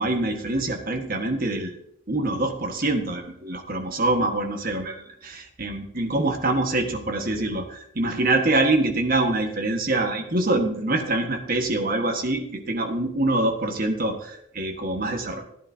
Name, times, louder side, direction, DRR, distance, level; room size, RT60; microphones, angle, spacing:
voice 1, 0.0-1.7 2.1-15.4, right 2 dB, 50° right, 4 dB, 1.5 m, -25 dB
15.5 x 10.5 x 2.8 m, 0.73 s
head